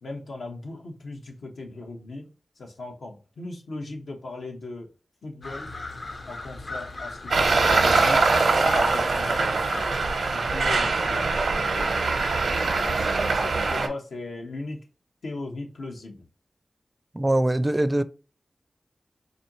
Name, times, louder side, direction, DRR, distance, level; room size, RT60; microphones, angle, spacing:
voice 1, 0.0-4.9 5.2-5.7 6.3-8.2 8.5-9.9 10.3-11.9 12.7-14.8 15.2-16.3, left 2 dB, 85° left, 1.0 m, -38 dB
sound 1, 5.4-10.4, left 2 dB, 60° left, 0.8 m, -37 dB
Traffic noise roadway noise, 7.3-13.9, right 3 dB, 90° right, 0.8 m, -23 dB
voice 2, 17.1-18.0, right 1 dB, 25° right, 0.4 m, -22 dB
4.3 x 2.7 x 3.0 m
cardioid pair, 45°, 0 cm